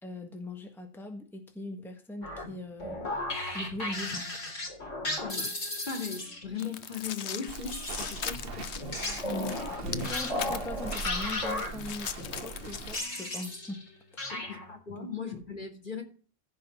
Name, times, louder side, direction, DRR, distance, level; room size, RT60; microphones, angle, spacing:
voice 1, 0.0-3.0 3.5-4.3 9.3-13.8 14.1-14.4 14.9-15.1, left 2 dB, ahead, 1.5 m, -40 dB
sound 1, 2.2-6.7 7.7-13.9 14.2-14.8, left 1 dB, 85° left, 4.2 m, -35 dB
voice 2, 5.0-5.5 5.9-8.9 14.3-16.0, left 6 dB, 40° left, 2.7 m, -38 dB
sound 2, 6.6-13.1, left 8 dB, 65° left, 1.1 m, -40 dB
Walk footsteps, 7.5-13.0, right 4 dB, 50° right, 1.2 m, -41 dB
15.5 x 5.4 x 6.8 m
omnidirectional pair, 1.3 m